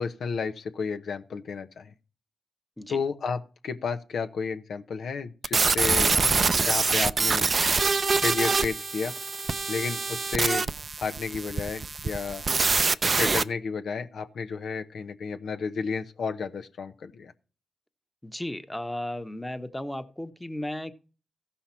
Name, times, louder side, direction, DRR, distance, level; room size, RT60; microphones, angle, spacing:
voice 1, 0.0-1.9 2.9-6.2 6.6-7.5 8.2-9.1 9.7-10.7 11.0-12.4 13.0-17.3, left 5 dB, 70° left, 0.9 m, -32 dB
sound 1, 5.4-13.4, right 4 dB, 50° right, 0.5 m, -25 dB
voice 2, 18.2-20.9, left 1 dB, 10° left, 1.2 m, -35 dB
14.5 x 5.7 x 4.4 m
supercardioid pair, 40°, 0 cm